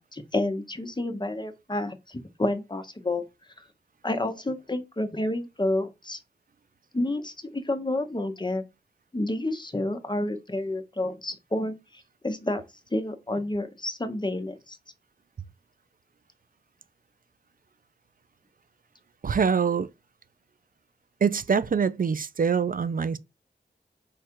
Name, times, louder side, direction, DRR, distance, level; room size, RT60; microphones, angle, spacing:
voice 1, 0.0-3.2 4.0-6.2 6.9-8.6 9.1-12.6 12.9-14.8, left 1 dB, 25° left, 0.9 m, -29 dB
voice 2, 19.2-19.9 21.2-23.2, right 6 dB, 50° right, 0.5 m, -24 dB
4.7 x 2.4 x 4.5 m
cardioid pair, 45°, 18 cm